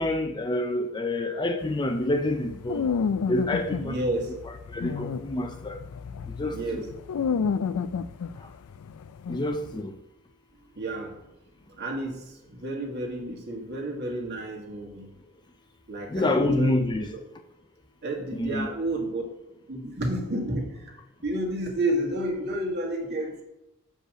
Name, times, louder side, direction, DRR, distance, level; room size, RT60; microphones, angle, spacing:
voice 1, 0.0-2.9 3.3-4.0 4.7-5.8 6.4-6.9 9.3-9.9 16.1-17.1 18.3-18.7, left 1 dB, 20° left, 0.5 m, -27 dB
sound 1, 1.6-9.8, left 6 dB, 90° left, 0.4 m, -31 dB
voice 2, 3.8-4.4 6.1-6.2 6.5-6.9 10.8-11.2 11.8-15.1 15.9-17.2 18.0-19.2 19.7-20.9 21.2-23.4, right 1 dB, 50° right, 1.8 m, -31 dB
6.5 x 5.3 x 6.1 m
head